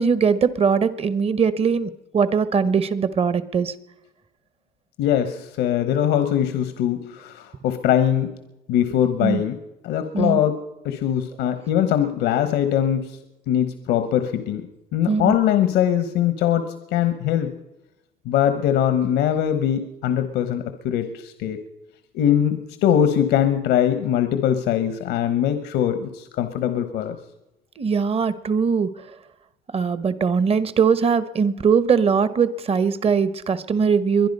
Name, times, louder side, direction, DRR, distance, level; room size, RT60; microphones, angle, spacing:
voice 1, 0.0-3.7 9.2-9.4 10.1-10.4 15.1-15.3 27.8-28.9 29.7-34.3, right 6 dB, 35° right, 15 dB, 1.1 m, -21 dB
voice 2, 5.0-8.3 8.7-9.6 9.8-10.5 10.8-13.2 13.5-14.7 14.9-17.5 18.2-21.6 22.1-27.2, left 10 dB, 90° left, 10 dB, 1.2 m, -22 dB
22.5 x 10.5 x 5.4 m, 0.95 s
cardioid pair, 110°, 17 cm